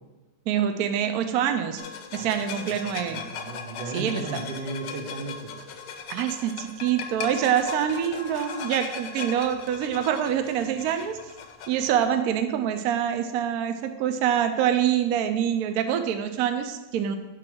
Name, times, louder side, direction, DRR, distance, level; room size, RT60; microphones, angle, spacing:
voice 1, 0.5-1.8 2.1-3.2 3.9-4.4 6.1-11.2 11.7-17.2, right 9 dB, 70° right, 7 dB, 1.0 m, -25 dB
sound 1, 1.8-12.1, left 6 dB, 90° left, 1.4 m, -38 dB
voice 2, 3.1-5.6, right 3 dB, 90° right, 3 dB, 1.7 m, -35 dB
9.6 x 3.3 x 6.1 m, 1.1 s
omnidirectional pair, 1.8 m